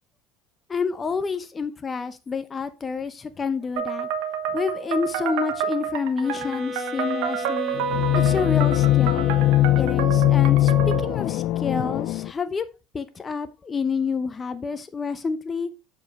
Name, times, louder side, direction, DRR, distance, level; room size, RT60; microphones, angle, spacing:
voice 1, 0.7-4.1 4.5-7.8 8.1-9.3 9.7-10.7 11.0-12.7 12.9-15.7, left 5 dB, 20° left, 0.8 m, -28 dB
sound 1, 3.8-11.1, right 8 dB, 80° right, 1.1 m, -29 dB
sound 2, 6.2-10.1, left 3 dB, 20° right, 2.6 m, -35 dB
sound 3, 7.7-12.3, left 15 dB, 55° left, 0.3 m, -20 dB
7.1 x 5.3 x 4.0 m
cardioid pair, 130°, 0 cm